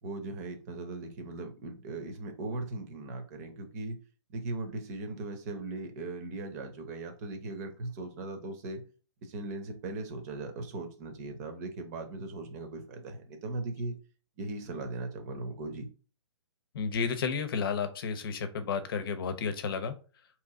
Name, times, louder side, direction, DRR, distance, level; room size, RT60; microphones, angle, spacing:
voice 1, 0.0-4.0 4.3-8.8 9.2-14.0 14.4-15.9, right 2 dB, 35° right, 6 dB, 1.0 m, -38 dB
voice 2, 16.7-19.9, left 6 dB, 50° left, 10 dB, 0.8 m, -32 dB
3.9 x 3.2 x 3.6 m, 0.36 s
hypercardioid pair, 150°, 15 cm